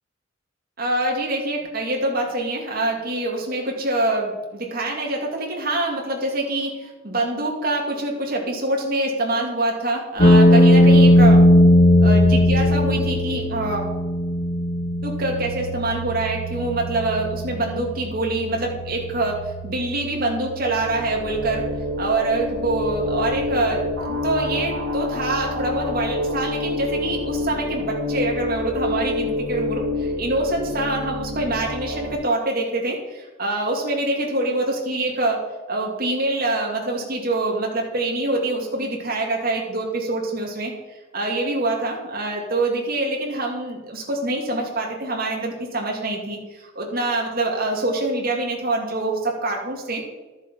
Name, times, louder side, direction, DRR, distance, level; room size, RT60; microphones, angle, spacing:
voice 1, 0.8-11.4 12.0-13.8 15.0-21.6 22.0-35.4 35.7-40.7 41.1-50.0, right 2 dB, 50° right, -1 dB, 2.6 m, -25 dB
sound 1, 10.2-24.2, left 1 dB, 50° left, 1.2 m, -19 dB
sound 2, 20.6-32.1, left 2 dB, 80° right, 2.5 m, -27 dB
12.5 x 7.2 x 5.5 m, 1.1 s
head